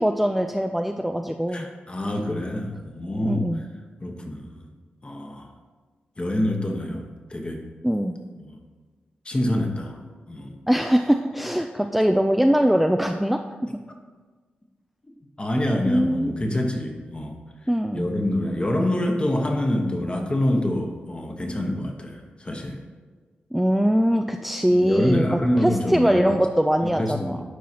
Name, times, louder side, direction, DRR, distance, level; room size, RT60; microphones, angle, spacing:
voice 1, 0.0-1.7 3.2-3.6 7.8-8.2 10.7-13.4 15.9-16.3 17.7-18.1 23.5-27.5, equal, ahead, 5 dB, 0.4 m, -22 dB
voice 2, 1.5-3.5 4.0-4.6 5.0-5.5 6.2-7.0 7.3-7.6 8.4-8.5 9.2-10.0 10.3-10.5 15.4-17.4 17.9-22.8 24.7-26.2 26.8-27.5, left 1 dB, 30° left, 3 dB, 1.1 m, -26 dB
11.0 x 4.7 x 2.9 m, 1.4 s
cardioid pair, 55°, 4 cm